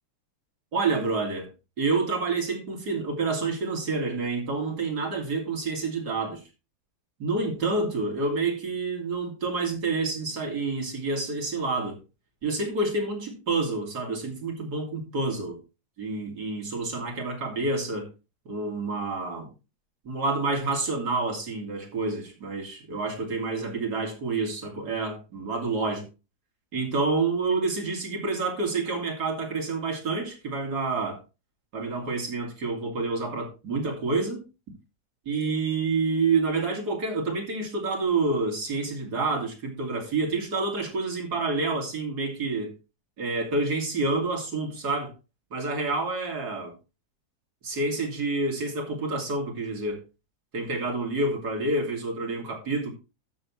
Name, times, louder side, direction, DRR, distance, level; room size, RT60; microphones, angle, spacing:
voice 1, 0.7-1.5 1.8-6.4 7.2-12.0 12.4-15.6 16.0-18.1 18.4-19.5 20.0-26.1 26.7-31.2 31.7-34.4 35.3-42.7 43.2-45.1 45.5-46.7 47.6-50.0 50.5-52.9, right 3 dB, 85° right, 3.1 m, -28 dB
12.5 x 7.1 x 3.2 m
omnidirectional pair, 1.7 m